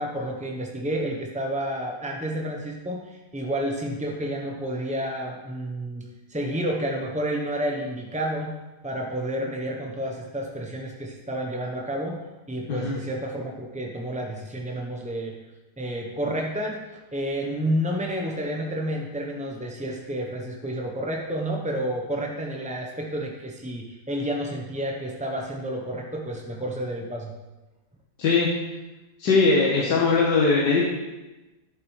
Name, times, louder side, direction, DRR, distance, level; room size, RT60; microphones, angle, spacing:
voice 1, 0.0-6.0 6.3-8.6 8.8-12.2 12.5-15.3 15.8-16.8 17.1-27.3, right 1 dB, 10° right, 0 dB, 0.3 m, -30 dB
voice 2, 29.2-30.8, left 4 dB, 85° left, -4 dB, 1.9 m, -20 dB
11.0 x 8.8 x 3.2 m, 1.1 s
omnidirectional pair, 1.8 m